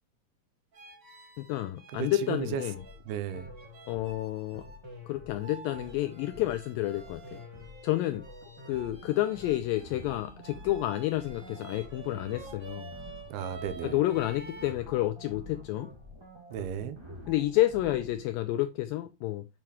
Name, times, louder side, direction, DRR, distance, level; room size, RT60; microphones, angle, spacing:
sound 1, 0.7-4.8 5.4-14.7, right 4 dB, 35° right, 1.3 m, -49 dB
voice 1, 1.4-2.8 3.9-4.7 5.1-7.4 7.8-8.3 8.7-12.9 13.8-15.9 17.3-19.5, left 15 dB, 85° left, 2.0 m, -30 dB
voice 2, 1.9-2.6 3.1-3.5 13.3-14.0 16.5-17.0, right 9 dB, 85° right, 2.6 m, -34 dB
sound 2, 2.4-18.2, left 1 dB, 15° right, 1.0 m, -48 dB
7.7 x 7.0 x 3.1 m
omnidirectional pair, 4.6 m